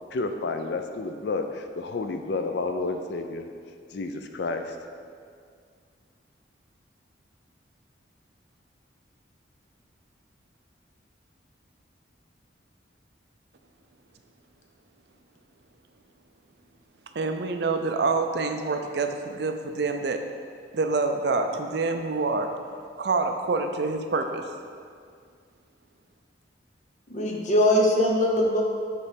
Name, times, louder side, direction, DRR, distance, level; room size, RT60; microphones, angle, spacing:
voice 1, 0.1-3.4 3.9-4.8, left 3 dB, 65° left, 6 dB, 0.4 m, -30 dB
voice 2, 17.1-20.2 20.7-22.5 23.0-24.4, right 3 dB, 60° right, 6 dB, 0.4 m, -26 dB
voice 3, 27.1-28.6, left 1 dB, 40° left, -1 dB, 0.8 m, -21 dB
8.1 x 3.2 x 5.1 m, 2.2 s
head